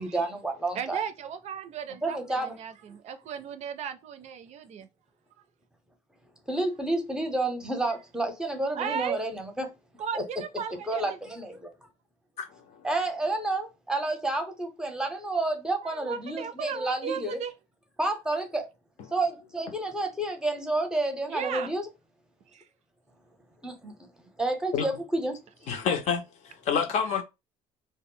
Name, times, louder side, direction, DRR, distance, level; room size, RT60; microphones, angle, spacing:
voice 1, 0.0-1.0 2.0-2.5 6.5-9.7 10.1-10.2 10.9-11.7 12.8-17.4 18.0-18.7 19.1-21.9 23.6-24.1 24.4-25.4, right 2 dB, 5° right, 0.7 m, -30 dB
voice 2, 0.7-4.9 8.7-9.2 10.0-11.2 15.8-17.5 21.3-21.7 22.5-22.7 27.0-27.2, right 7 dB, 55° right, 0.4 m, -36 dB
voice 3, 12.4-12.9 24.7-24.9 25.7-27.2, left 7 dB, 60° left, 0.6 m, -28 dB
2.0 x 2.0 x 3.6 m
cardioid pair, 120°, 13 cm